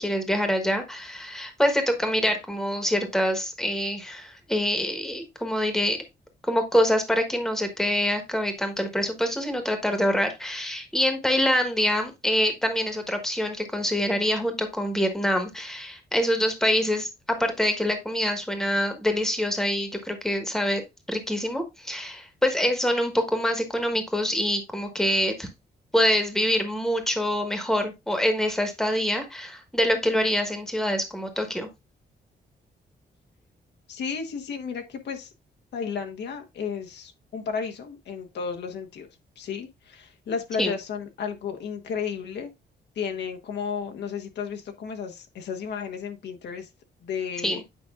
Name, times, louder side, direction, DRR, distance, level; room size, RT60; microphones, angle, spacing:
voice 1, 0.0-6.0 6.5-20.8 21.1-25.5 25.9-31.7 40.6-40.7 47.4-47.6, equal, ahead, 1.3 m, -25 dB
voice 2, 33.9-35.3 35.7-39.1 39.4-42.5 43.0-46.7 47.0-47.6, left 6 dB, 75° left, 1.2 m, -33 dB
9.1 x 5.1 x 2.4 m
wide cardioid pair, 175°, 18 cm